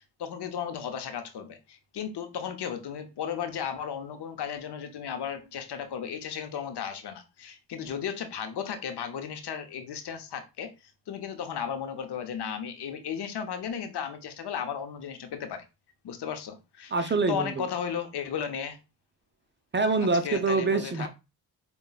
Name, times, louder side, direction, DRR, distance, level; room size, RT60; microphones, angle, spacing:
voice 1, 0.2-10.7 11.1-15.6 16.0-18.8 20.2-21.1, left 8 dB, 70° left, 0.7 m, -35 dB
voice 2, 16.9-17.7 19.7-21.1, right 3 dB, 25° right, 0.6 m, -25 dB
5.3 x 2.3 x 2.4 m
cardioid pair, 55°, 42 cm